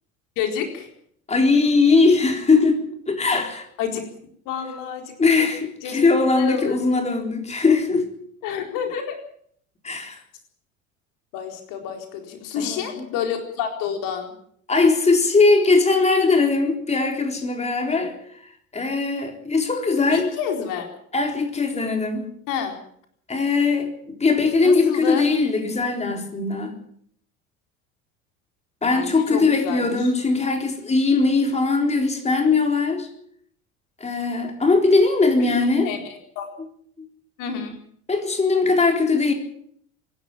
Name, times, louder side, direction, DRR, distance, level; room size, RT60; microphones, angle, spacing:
voice 1, 0.4-0.9 3.8-4.1 4.5-5.5 5.8-6.0 6.3-6.8 8.4-9.2 11.3-14.3 20.1-20.9 22.5-22.8 24.6-25.2 28.9-30.1 35.4-35.6 35.8-36.5 37.4-37.7, left 7 dB, 50° left, 4.3 m, -29 dB
voice 2, 1.3-3.7 5.2-8.1 9.8-10.2 12.6-13.1 14.7-18.2 18.7-20.3 21.1-22.3 23.3-26.7 28.8-33.1 34.0-35.9 36.6-36.7 38.1-39.3, left 3 dB, 15° left, 4.0 m, -20 dB
25.5 x 12.5 x 8.9 m
figure-of-eight pair, 70°, 42 cm